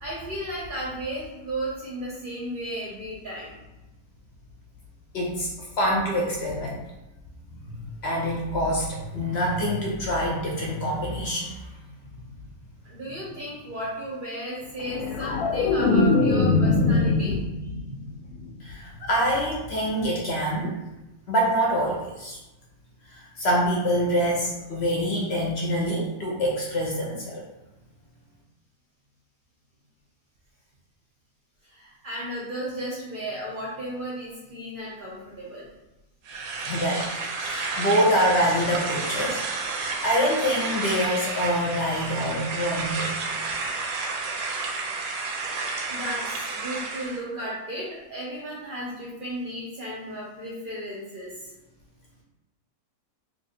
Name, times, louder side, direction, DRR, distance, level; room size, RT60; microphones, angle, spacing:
voice 1, 0.0-3.6 11.9-12.3 12.8-18.5 31.6-35.7 45.9-51.5, right 1 dB, 50° right, -5 dB, 0.7 m, -35 dB
voice 2, 5.1-6.8 7.6-11.6 18.6-20.7 21.3-22.4 23.1-27.4 36.6-39.4 39.8-43.2, equal, 60° left, -2 dB, 0.8 m, -25 dB
sound 1, 14.8-18.0 18.3-18.7, left 3 dB, 90° left, 1.0 m, -22 dB
sound 2, 36.2-47.2, right 3 dB, 80° right, 1.1 m, -31 dB
3.0 x 2.4 x 4.1 m, 1.0 s
omnidirectional pair, 1.5 m